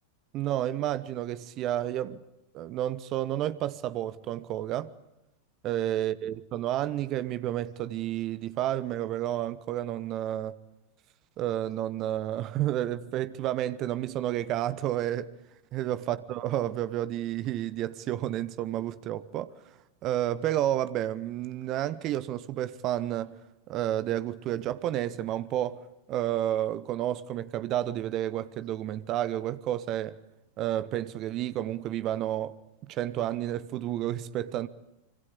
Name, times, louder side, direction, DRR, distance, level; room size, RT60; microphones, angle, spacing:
voice 1, 0.3-2.2 2.5-4.9 5.6-10.6 11.4-15.3 15.7-19.5 20.0-23.4 23.7-25.8 26.1-30.2 30.6-32.6 32.8-34.7, right 12 dB, 35° right, 1.0 m, -30 dB
26.0 x 26.0 x 8.6 m
figure-of-eight pair, 90°, 0 cm